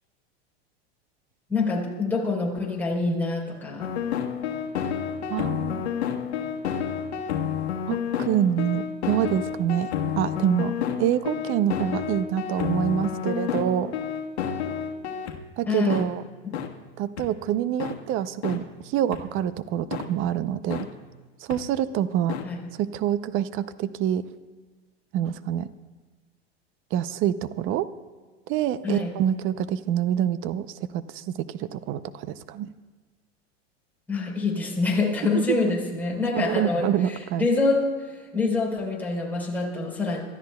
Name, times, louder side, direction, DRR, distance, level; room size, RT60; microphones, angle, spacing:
voice 1, 1.5-3.9 15.7-16.1 16.4-16.6 22.4-22.6 28.8-29.1 34.1-40.2, left 3 dB, 5° left, -4 dB, 3.8 m, -26 dB
sound 1, 3.8-15.4 15.9-16.0 16.5-16.7 17.2-17.3 17.8-17.9 18.4-18.6 19.1-19.2 19.9-20.0 20.7-20.8 21.5-21.6 22.3-22.4, left 8 dB, 85° left, 1.3 m, -29 dB
voice 2, 5.3-5.8 7.9-9.9 10.2-10.7 11.0-13.9 15.6-16.2 17.0-20.9 21.5-22.4 22.8-24.2 25.1-25.7 26.9-27.9 28.5-32.7 36.3-37.5, right 10 dB, 40° right, 14 dB, 0.6 m, -26 dB
28.5 x 13.5 x 2.3 m, 1.3 s
supercardioid pair, 115°, 32 cm